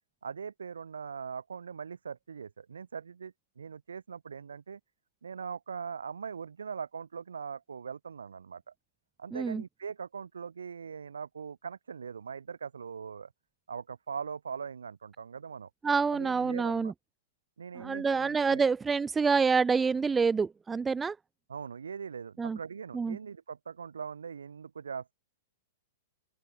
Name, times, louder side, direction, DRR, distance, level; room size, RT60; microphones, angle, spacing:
voice 1, 0.2-4.8 5.2-8.7 9.2-13.3 13.7-15.7 16.1-16.9 17.6-18.7 21.5-25.1, right 6 dB, 65° right, 3.8 m, -41 dB
voice 2, 9.3-9.6 15.8-16.9 17.8-21.2 22.4-22.6 22.9-23.2, right 5 dB, 10° right, 0.4 m, -27 dB
open air
figure-of-eight pair, 105°, 0 cm